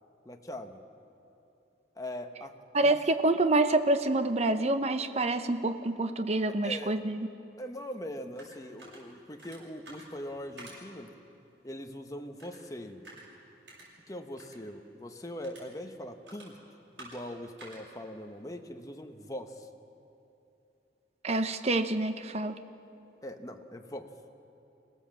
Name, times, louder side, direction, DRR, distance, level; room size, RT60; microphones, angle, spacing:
voice 1, 0.2-0.8 2.0-2.6 2.8-3.0 6.6-7.0 7.6-11.1 11.6-13.1 14.1-16.6 17.0-19.7 23.2-24.1, left 1 dB, 20° left, 5 dB, 1.1 m, -41 dB
voice 2, 2.7-7.2 21.2-22.6, right 2 dB, 35° right, 9 dB, 0.9 m, -27 dB
sound 1, 7.8-19.4, right 1 dB, 80° right, 7.5 m, -54 dB
26.0 x 17.0 x 7.5 m, 2.9 s
head